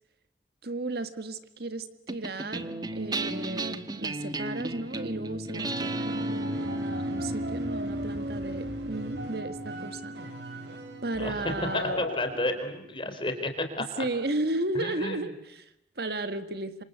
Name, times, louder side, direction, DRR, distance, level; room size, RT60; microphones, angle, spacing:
voice 1, 0.6-10.1 11.0-12.0 14.0-16.8, right 2 dB, 60° right, 11 dB, 1.7 m, -34 dB
sound 1, 2.1-12.7, right 1 dB, 25° right, 1.4 m, -35 dB
sound 2, 5.6-12.1, right 1 dB, 80° right, 4.1 m, -41 dB
sound 3, 11.4-13.0, left 2 dB, 75° left, 3.7 m, -37 dB
voice 2, 12.0-13.5 13.8-14.1 14.7-15.2, left 1 dB, 30° left, 6 dB, 4.2 m, -31 dB
27.0 x 26.0 x 8.2 m, 0.81 s
head